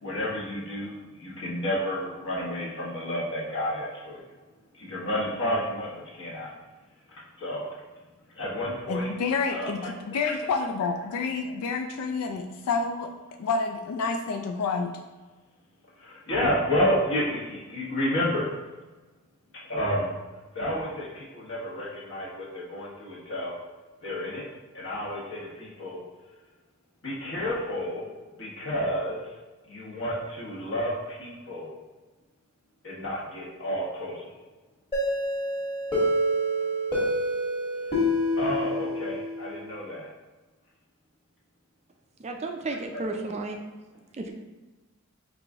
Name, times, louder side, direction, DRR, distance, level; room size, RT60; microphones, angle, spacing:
voice 1, 0.0-4.2 4.8-5.9 6.2-6.5 7.4-7.7 8.4-9.1 9.5-10.3 16.3-18.5 19.7-20.1 20.5-23.5 24.0-24.4 24.7-26.0 27.0-28.0 28.4-29.2 29.7-31.7 32.8-34.2 38.3-40.1 42.9-43.0, equal, 60° left, -4 dB, 1.2 m, -30 dB
voice 2, 8.9-13.1 13.4-14.9, left 4 dB, 85° left, 4 dB, 0.3 m, -29 dB
sound 1, 34.9-39.6, equal, 25° left, 1.4 m, -27 dB
voice 3, 42.2-43.6 44.1-44.3, right 3 dB, 30° right, 3 dB, 0.4 m, -33 dB
4.8 x 2.5 x 3.5 m, 1.2 s
head